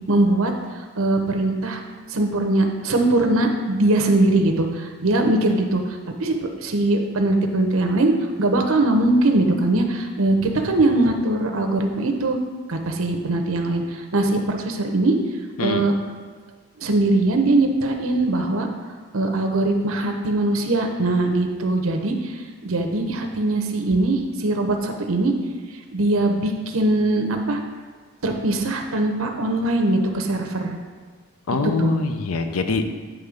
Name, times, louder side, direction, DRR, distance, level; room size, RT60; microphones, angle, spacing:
voice 1, 0.1-0.5 1.0-1.8 2.1-5.8 6.2-6.3 6.6-8.1 8.4-12.4 12.7-15.2 15.6-15.9 16.8-18.7 19.1-22.3 22.6-25.3 25.9-27.6 28.2-30.8 31.6-32.0, right 2 dB, 75° right, 4 dB, 0.8 m, -21 dB
voice 2, 31.5-32.8, left 3 dB, 85° left, 7 dB, 0.6 m, -23 dB
9.5 x 3.2 x 5.0 m, 1.5 s
head